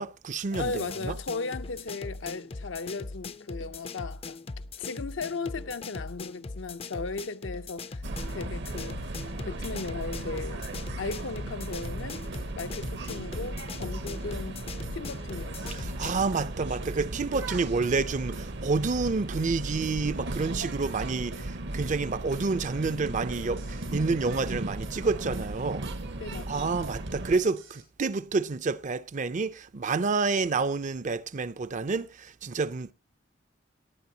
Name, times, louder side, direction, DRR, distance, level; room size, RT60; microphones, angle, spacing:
voice 1, 0.0-1.1 16.0-25.9 26.5-32.9, right 4 dB, 40° right, 0.5 m, -29 dB
voice 2, 0.5-4.4 4.8-8.0 8.3-10.7 11.0-12.2 12.6-14.6 14.9-15.8 26.2-26.7, left 4 dB, 75° left, 0.7 m, -36 dB
sound 1, 0.5-16.3, left 3 dB, 30° left, 0.5 m, -40 dB
sound 2, 8.0-27.4, right 2 dB, 65° right, 0.9 m, -36 dB
sound 3, 11.8-12.0 12.3-12.5 12.8-13.0 13.3-13.5 13.8-14.0 14.3-14.5 14.8-16.0 16.3-16.5 16.8-17.0 17.3-17.6 17.8-18.0 18.3-18.5 18.8-20.0 20.3-20.5 20.8-21.0 21.3-21.6 21.8-22.0 22.3-22.5 22.8-24.0 24.3-24.5 24.8-25.0 25.3-25.6 25.8-26.0 26.3-26.5 26.8-27.8, right 2 dB, 85° right, 6.0 m, -46 dB
18.5 x 9.0 x 2.8 m
head